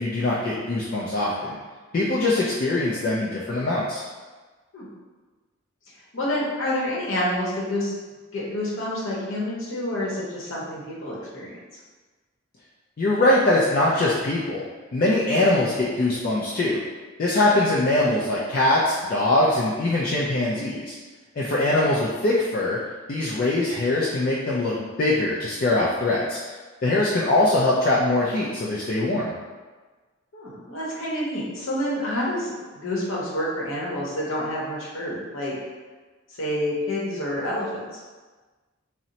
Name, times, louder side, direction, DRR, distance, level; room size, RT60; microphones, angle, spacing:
voice 1, 0.0-1.6 1.9-4.0 13.0-14.6 14.9-16.8 17.2-20.9 21.4-22.8 23.1-26.4 26.8-29.3, left 2 dB, 40° left, -6 dB, 0.3 m, -22 dB
voice 2, 6.1-7.9 8.3-11.5 21.5-21.9 30.3-35.5 36.4-38.0, left 1 dB, 65° left, -5 dB, 0.8 m, -28 dB
2.7 x 2.0 x 3.9 m, 1.3 s
head